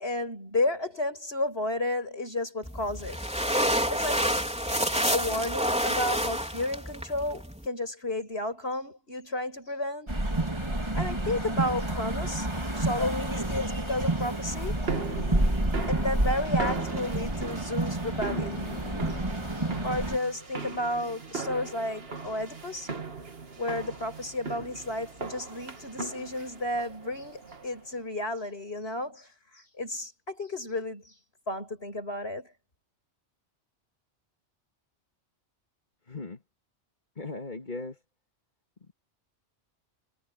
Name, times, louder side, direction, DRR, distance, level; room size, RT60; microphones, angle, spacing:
voice 1, 0.0-3.2 3.9-4.3 5.1-10.2 10.9-12.5 12.8-14.9 15.9-18.6 19.8-22.9 23.6-31.1 31.5-32.5, left 1 dB, 65° left, 6.5 m, -32 dB
sound 1, 2.6-7.7, equal, 5° right, 3.9 m, -28 dB
sound 2, 10.1-20.2, right 1 dB, 25° right, 3.2 m, -29 dB
sound 3, 14.0-27.9, right 4 dB, 60° right, 2.0 m, -39 dB
voice 2, 36.1-36.4 37.2-38.0, left 3 dB, 40° left, 2.6 m, -37 dB
omnidirectional pair, 1.2 m